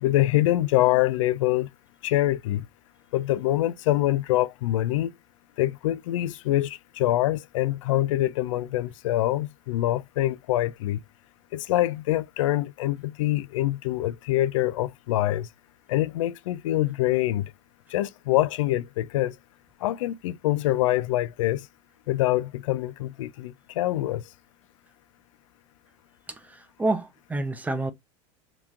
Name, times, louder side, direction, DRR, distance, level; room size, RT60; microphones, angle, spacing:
voice 1, 0.0-1.7 2.0-2.7 3.1-5.1 5.6-11.0 11.5-15.5 15.9-17.5 17.9-19.4 19.8-21.7 22.1-24.2, left 15 dB, 85° left, 0.4 m, -25 dB
voice 2, 26.3-27.9, right 2 dB, 10° right, 0.6 m, -29 dB
3.5 x 2.9 x 2.4 m
supercardioid pair, 120°, 16 cm